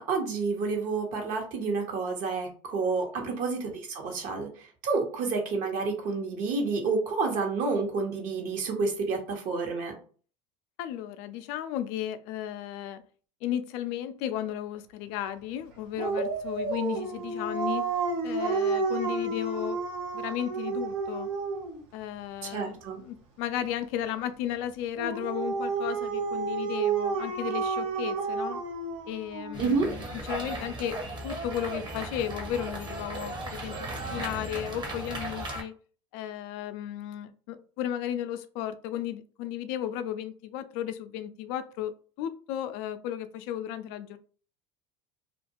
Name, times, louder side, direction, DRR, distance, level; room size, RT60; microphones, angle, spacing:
voice 1, 0.0-4.5 4.8-9.9 22.5-23.0 29.6-29.9, right 4 dB, 55° right, 2 dB, 1.0 m, -29 dB
voice 2, 10.8-13.0 13.4-17.9 18.2-19.8 20.1-21.3 21.9-28.6 29.1-35.7 36.1-44.2, left 11 dB, 65° left, 10 dB, 0.4 m, -34 dB
Dog, 16.0-21.8 25.0-29.5, right 4 dB, 75° right, 0.7 m, -30 dB
sound 1, 29.5-35.6, right 2 dB, 30° right, 0.9 m, -36 dB
2.4 x 2.2 x 2.8 m, 0.41 s
hypercardioid pair, 80°, 16 cm